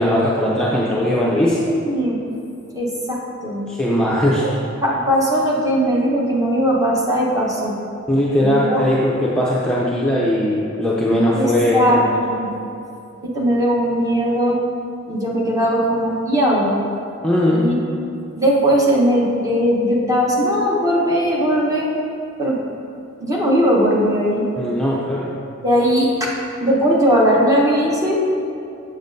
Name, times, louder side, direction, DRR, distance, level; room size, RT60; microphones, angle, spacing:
voice 1, 0.0-1.6 3.7-4.5 8.1-12.1 17.2-17.7 24.6-25.3, left 1 dB, 5° left, -7 dB, 0.5 m, -19 dB
voice 2, 1.3-2.3 2.7-3.6 4.8-7.8 8.4-8.8 11.3-12.0 12.3-12.5 13.2-14.6 15.1-16.8 17.5-17.8 18.4-21.9 22.4-22.6 23.2-24.5 25.6-26.3 26.6-28.2, equal, 15° right, -4 dB, 1.0 m, -19 dB
7.3 x 7.0 x 2.6 m, 2.7 s
head